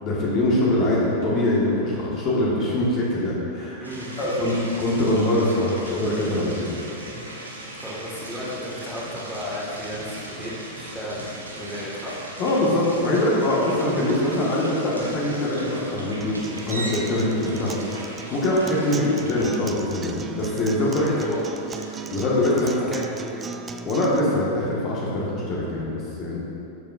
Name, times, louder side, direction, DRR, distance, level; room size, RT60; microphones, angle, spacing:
voice 1, 0.0-3.8 4.2-6.7 12.4-21.3 22.1-22.9 23.8-26.4, left 1 dB, 35° left, -5 dB, 1.7 m, -23 dB
sound 1, 3.8-22.7, right 2 dB, 80° right, 1.2 m, -39 dB
voice 2, 7.8-12.2 18.9-19.1 21.1-21.4 22.5-23.5, equal, ahead, -7 dB, 1.9 m, -34 dB
Acoustic guitar, 16.2-24.2, right 5 dB, 20° right, 0.4 m, -37 dB
12.0 x 7.2 x 2.6 m, 2.7 s
figure-of-eight pair, 90°, 0 cm